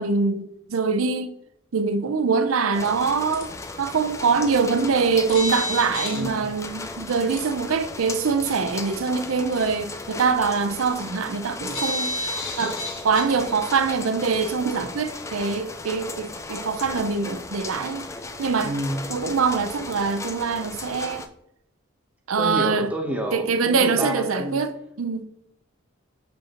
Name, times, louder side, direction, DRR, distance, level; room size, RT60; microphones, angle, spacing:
voice 1, 0.0-1.3 1.7-3.5 3.8-12.7 13.0-18.1 18.4-18.7 19.1-21.2 22.3-22.9 23.3-25.2, right 5 dB, 85° right, 0.6 m, -24 dB
sound 1, 2.7-21.3, left 3 dB, 15° left, 0.3 m, -36 dB
sound 2, 3.3-3.4 5.3-6.2 7.4-7.5 11.7-13.3, left 1 dB, 40° left, 2.2 m, -29 dB
voice 2, 6.1-6.5 12.6-12.7 18.6-19.0 22.4-24.6, equal, 5° right, 0.9 m, -29 dB
7.0 x 5.3 x 2.9 m
head